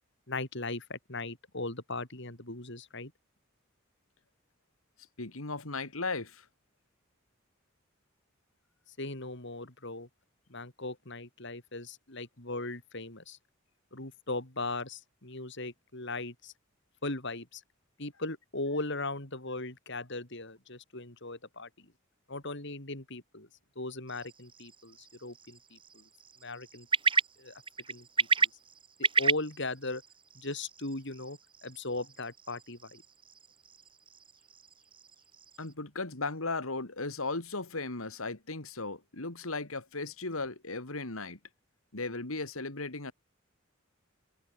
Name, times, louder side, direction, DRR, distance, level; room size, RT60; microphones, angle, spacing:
voice 1, 0.3-3.1 9.0-10.1 10.5-13.4 13.9-16.5 17.0-17.6 18.0-21.9 22.3-23.5 23.8-26.0 26.4-26.9 27.4-27.6 27.9-28.1 28.4-28.5 29.0-30.0 30.4-33.0, left 2 dB, 60° left, 5.1 m, -38 dB
voice 2, 5.2-6.5 35.6-41.4 41.9-43.1, left 3 dB, 85° left, 3.0 m, -36 dB
sound 1, 24.1-35.7, right 5 dB, 25° right, 2.9 m, -34 dB
head